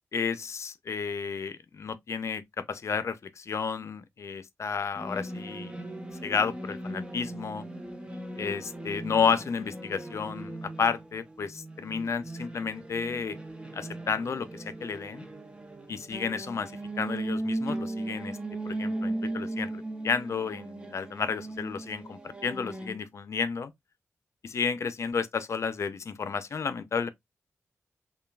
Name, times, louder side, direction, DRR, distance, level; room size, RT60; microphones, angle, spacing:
voice 1, 0.1-5.7 6.2-7.6 8.4-13.4 13.7-15.3 15.9-16.7 17.0-18.4 18.7-23.7 24.4-27.1, left 6 dB, 70° left, 0.5 m, -32 dB
sound 1, 4.9-23.0, right 1 dB, 20° right, 0.7 m, -37 dB
5.4 x 2.3 x 2.3 m
wide cardioid pair, 95°, 5 cm